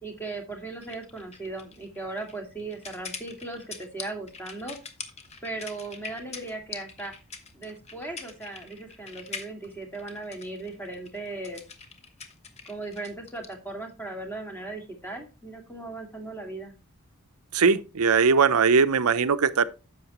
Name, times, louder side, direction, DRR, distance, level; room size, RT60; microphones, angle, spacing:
voice 1, 0.0-4.8 5.4-7.1 7.5-11.6 12.7-16.7, right 2 dB, 10° left, 2.1 m, -37 dB
sound 1, 0.8-13.5, left 5 dB, 30° left, 1.2 m, -43 dB
voice 2, 17.5-19.7, right 5 dB, 80° right, 0.6 m, -20 dB
10.5 x 7.4 x 2.9 m
head